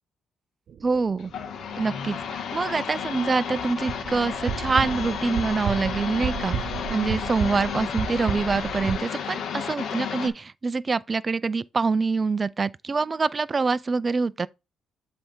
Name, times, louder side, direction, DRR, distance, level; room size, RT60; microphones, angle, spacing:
sound 1, 0.7-9.0, right 8 dB, 65° right, 0.7 m, -34 dB
voice 1, 0.8-1.3 1.7-14.5, right 4 dB, 30° right, 0.4 m, -25 dB
sound 2, 1.2-10.3, left 7 dB, 70° left, 1.3 m, -32 dB
7.8 x 3.4 x 4.5 m
cardioid pair, 90°, 0 cm